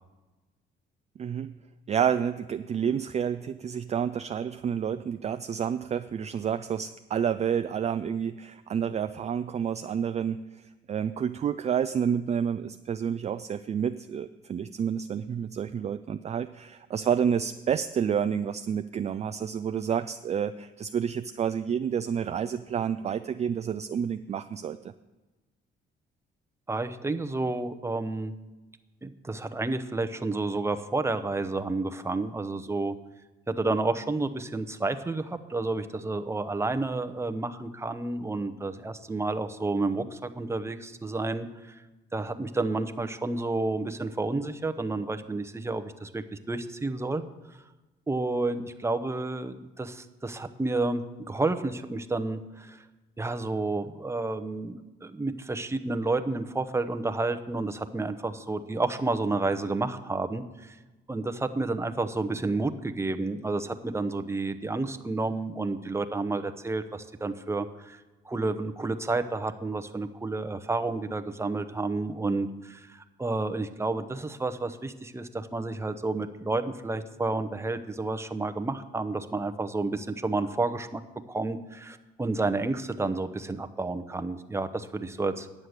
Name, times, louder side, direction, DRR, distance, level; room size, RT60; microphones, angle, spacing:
voice 1, 1.2-1.6 1.9-24.8, right 8 dB, 35° right, 10 dB, 0.3 m, -29 dB
voice 2, 26.7-28.3 29.0-33.0 33.5-41.8 42.1-47.2 47.5-47.6 48.1-52.9 53.2-60.8 61.1-81.0 81.3-85.5, right 3 dB, 15° right, 8 dB, 0.7 m, -30 dB
9.5 x 7.4 x 6.5 m, 1.1 s
cardioid pair, 90°, 20 cm